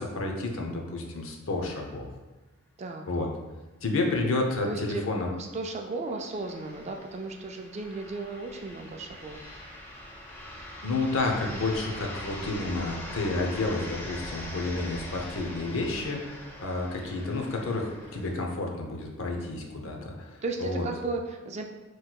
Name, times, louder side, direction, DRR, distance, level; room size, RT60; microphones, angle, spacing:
voice 1, 0.0-2.1 3.1-3.3 3.8-5.3 10.8-20.9, left 2 dB, 70° left, 2 dB, 0.7 m, -30 dB
voice 2, 4.6-5.0 5.4-9.4 19.4-19.5 19.9-20.1 20.4-21.6, right 3 dB, 30° right, 3 dB, 0.3 m, -35 dB
sound 1, 5.5-18.3, left 1 dB, 10° left, 0.6 m, -42 dB
5.8 x 3.1 x 2.2 m, 1.2 s
head